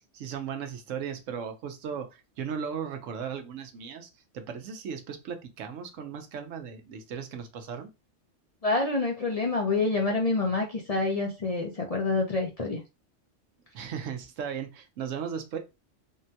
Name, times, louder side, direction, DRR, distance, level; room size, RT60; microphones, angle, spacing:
voice 1, 0.0-7.9 13.7-15.6, right 7 dB, 85° right, 1.0 m, -36 dB
voice 2, 8.6-12.8, left 3 dB, 45° left, 0.5 m, -27 dB
3.7 x 2.2 x 2.7 m
omnidirectional pair, 1.3 m